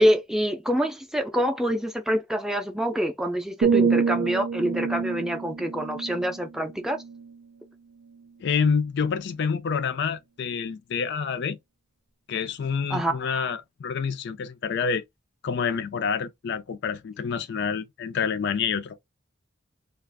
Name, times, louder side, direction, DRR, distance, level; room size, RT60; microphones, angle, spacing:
voice 1, 0.0-7.0 12.9-13.2, equal, ahead, 0.5 m, -26 dB
sound 1, 3.6-7.5 8.0-8.3, right 6 dB, 80° right, 0.4 m, -27 dB
voice 2, 8.4-11.6 12.3-15.0 15.4-19.0, left 6 dB, 60° left, 0.4 m, -27 dB
2.4 x 2.4 x 3.3 m
head